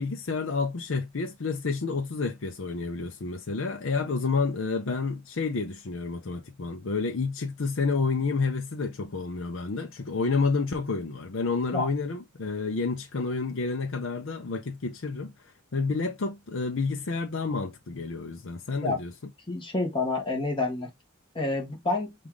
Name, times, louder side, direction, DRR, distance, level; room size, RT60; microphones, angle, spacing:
voice 1, 0.0-15.3 15.7-19.1, left 4 dB, 60° left, 0.6 m, -29 dB
voice 2, 19.5-20.9 21.3-22.1, left 2 dB, 25° left, 1.1 m, -28 dB
5.4 x 2.5 x 3.1 m
head